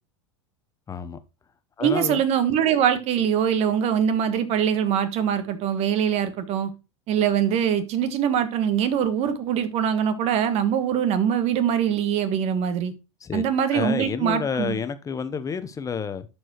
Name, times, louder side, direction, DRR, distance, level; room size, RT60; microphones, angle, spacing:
voice 1, 0.9-1.2 1.8-2.2 13.2-13.4 13.7-16.3, left 6 dB, 20° left, 0.9 m, -29 dB
voice 2, 1.8-6.7 7.1-12.9 13.3-14.7, right 8 dB, 45° right, 1.4 m, -23 dB
12.0 x 4.7 x 3.0 m
hypercardioid pair, 95°, 15 cm